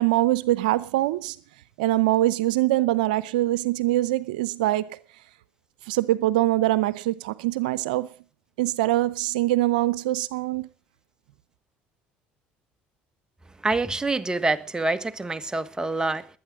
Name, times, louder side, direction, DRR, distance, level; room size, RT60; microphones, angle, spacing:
voice 1, 0.0-1.4 1.8-5.0 5.9-8.1 8.6-10.7, right 16 dB, 90° right, 0.7 m, -23 dB
voice 2, 13.6-16.3, right 2 dB, 15° right, 1.4 m, -26 dB
21.0 x 9.2 x 6.2 m
supercardioid pair, 80°, 4 cm